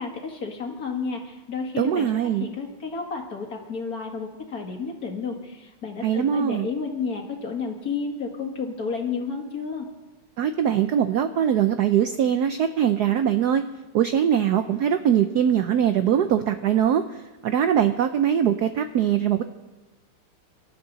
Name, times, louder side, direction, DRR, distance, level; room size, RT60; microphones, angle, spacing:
voice 1, 0.0-2.1 2.4-9.9, left 5 dB, 45° left, 2 dB, 2.3 m, -31 dB
voice 2, 1.8-2.5 6.0-6.7 10.4-13.6 13.9-19.4, right 9 dB, 75° right, 9 dB, 0.9 m, -22 dB
25.5 x 12.5 x 4.0 m, 1.1 s
omnidirectional pair, 2.4 m